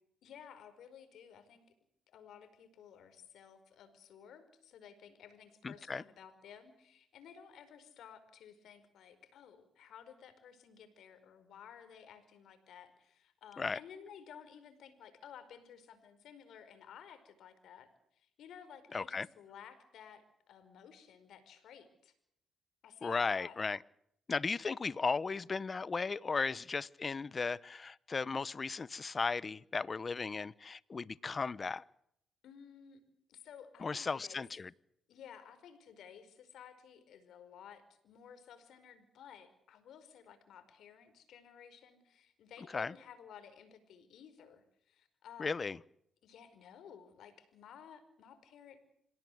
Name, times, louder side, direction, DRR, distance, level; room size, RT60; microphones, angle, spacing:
voice 1, 0.2-1.7 2.1-22.1 22.8-23.6 32.4-33.0 33.3-34.4 35.1-45.7 46.2-48.8, left 8 dB, 75° left, 10 dB, 5.0 m, -55 dB
voice 2, 5.6-6.0 13.6-13.8 18.9-19.3 23.0-23.8 24.3-31.8 33.8-34.7 42.7-42.9 45.4-45.8, left 4 dB, 35° left, 20 dB, 0.8 m, -36 dB
26.5 x 17.0 x 8.0 m, 0.71 s
cardioid pair, 90°, 0 cm